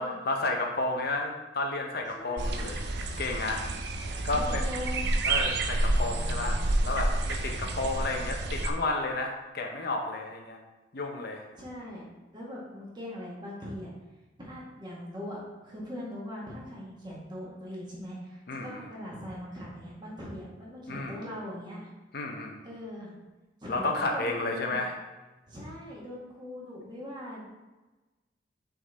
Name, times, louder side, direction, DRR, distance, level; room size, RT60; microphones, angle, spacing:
voice 1, 0.3-2.8 3.2-3.6 4.2-4.6 5.2-10.6 10.9-11.4 18.5-18.8 20.9-21.3 22.1-22.6 23.7-24.9, left 2 dB, 60° left, 2 dB, 0.8 m, -32 dB
voice 2, 2.1-2.7 4.3-5.2 11.6-13.9 14.4-21.9 22.6-23.1 23.6-24.8 25.5-27.5, left 1 dB, 25° right, -5 dB, 1.6 m, -41 dB
sound 1, 2.4-8.7, right 2 dB, 65° right, 0.6 m, -29 dB
6.1 x 3.9 x 4.1 m, 1.1 s
head